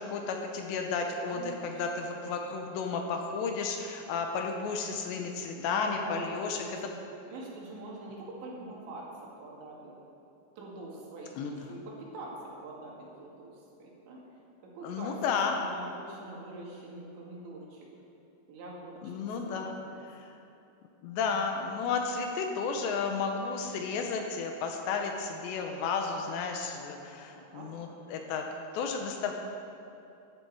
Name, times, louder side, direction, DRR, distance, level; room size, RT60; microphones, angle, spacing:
voice 1, 0.0-6.8 11.4-11.5 14.8-15.6 19.0-19.8 20.2-20.3 21.0-28.5 28.7-29.3, left 5 dB, 75° left, 3 dB, 2.9 m, -33 dB
voice 2, 1.2-2.4 5.7-6.8 7.3-9.9 10.6-14.2 14.6-15.2 15.5-17.9 18.5-19.2 19.5-20.0 27.3-27.7, right 2 dB, 75° right, -3 dB, 4.3 m, -44 dB
14.0 x 12.0 x 4.8 m, 2.8 s
omnidirectional pair, 5.4 m